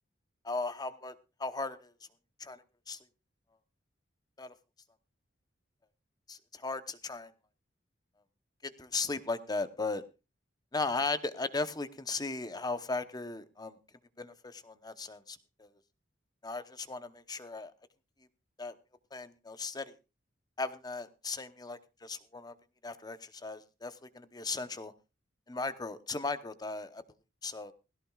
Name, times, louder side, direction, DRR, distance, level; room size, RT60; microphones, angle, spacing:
voice 1, 0.4-1.1 1.4-1.9 2.4-3.0 4.4-4.5 6.3-7.3 8.6-10.0 10.7-13.8 14.2-15.7 16.4-17.7 18.6-18.7 19.1-19.9 20.6-22.5 22.8-24.9 25.5-27.0 27.4-27.7, left 3 dB, 20° left, 12 dB, 0.9 m, -37 dB
17.0 x 16.5 x 2.4 m, 0.29 s
head